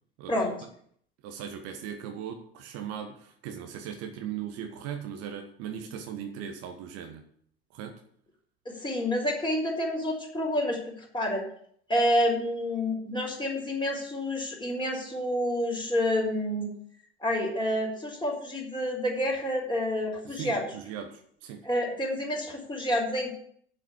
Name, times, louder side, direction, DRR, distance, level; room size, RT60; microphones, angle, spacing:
voice 1, 0.2-0.5 1.2-7.2 7.7-8.0 20.2-21.7, right 8 dB, 55° right, 5 dB, 1.3 m, -38 dB
voice 2, 8.6-11.4 11.9-16.7 17.2-20.6 21.6-23.3, left 1 dB, 15° left, -1 dB, 4.3 m, -28 dB
7.7 x 7.4 x 8.3 m, 0.62 s
figure-of-eight pair, 65°, 31 cm